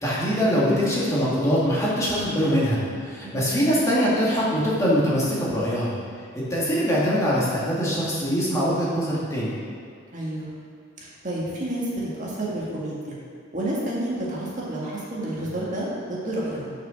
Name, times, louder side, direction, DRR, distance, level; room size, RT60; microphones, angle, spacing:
voice 1, 0.0-5.9 6.3-9.6, equal, 15° left, -8 dB, 2.1 m, -23 dB
voice 2, 3.2-3.8 10.1-10.5 11.0-13.2 13.5-16.7, right 1 dB, 40° right, -5 dB, 1.9 m, -30 dB
7.0 x 6.6 x 6.5 m, 2.3 s
head